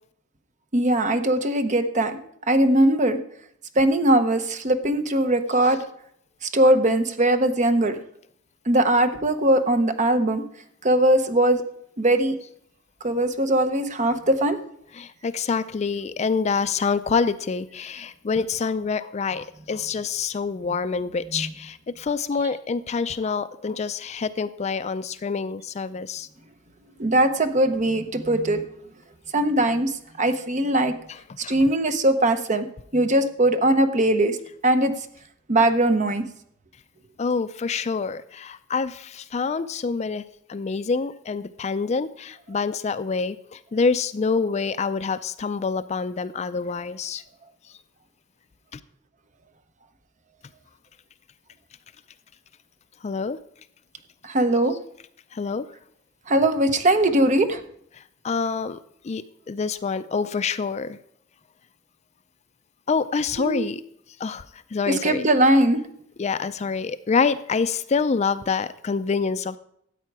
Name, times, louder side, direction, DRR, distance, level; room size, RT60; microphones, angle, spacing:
voice 1, 0.7-2.2 2.5-3.2 3.8-5.8 6.5-8.0 8.7-10.4 10.8-11.6 12.0-12.3 13.0-14.6 21.3-21.5 27.0-28.6 29.3-29.9 30.2-30.9 31.5-32.7 32.9-34.4 34.6-34.9 35.5-36.2 54.2-54.7 56.3-57.6 63.4-63.7 64.9-65.8, right 1 dB, 40° right, 8 dB, 0.9 m, -20 dB
voice 2, 14.9-26.3 31.1-31.6 37.2-40.2 40.5-47.2 48.7-48.8 53.0-53.4 55.3-55.7 57.9-58.8 59.0-61.0 62.9-63.8 64.2-64.4 64.7-65.3 66.2-69.6, left 5 dB, 35° left, 13 dB, 0.4 m, -26 dB
13.5 x 8.4 x 4.7 m, 0.70 s
head